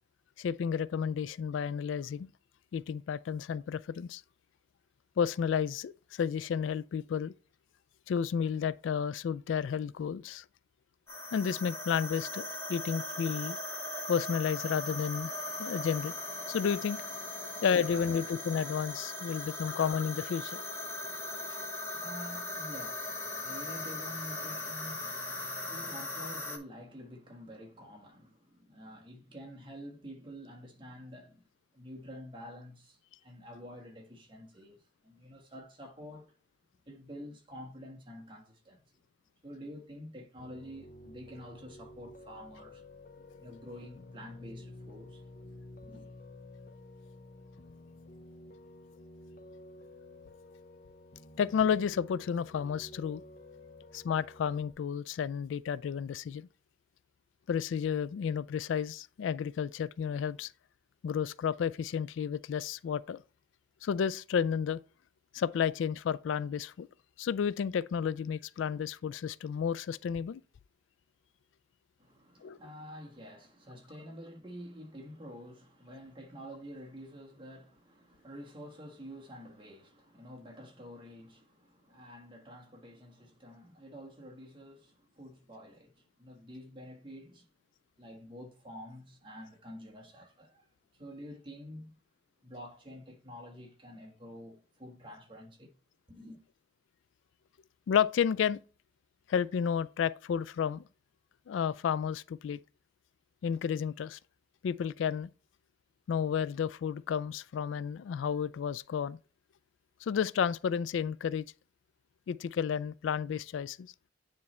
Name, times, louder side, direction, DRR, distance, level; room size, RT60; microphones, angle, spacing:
voice 1, 0.4-2.3 2.7-4.2 5.2-7.3 8.1-10.4 11.3-13.6 14.1-15.3 15.6-16.1 16.5-17.0 17.6-20.6 51.4-53.2 53.9-56.5 57.5-60.5 61.0-63.2 63.8-64.8 65.3-66.9 67.2-70.4 72.4-72.6 97.9-98.6 99.3-100.8 101.5-102.6 103.4-104.2 104.6-105.3 106.1-109.2 110.0-111.5 112.3-113.9, left 7 dB, 85° left, 0.3 m, -31 dB
sound 1, 11.1-26.6, left 2 dB, 15° left, 1.0 m, -39 dB
voice 2, 21.0-31.5 31.7-36.3 36.9-38.8 39.4-42.8 43.4-45.2 45.8-46.1 72.0-87.5 88.0-92.0 92.4-95.7 96.1-96.4, equal, 25° right, 1.3 m, -48 dB
Piano, 40.4-54.7, left 1 dB, 45° left, 0.7 m, -51 dB
9.5 x 3.2 x 4.2 m
head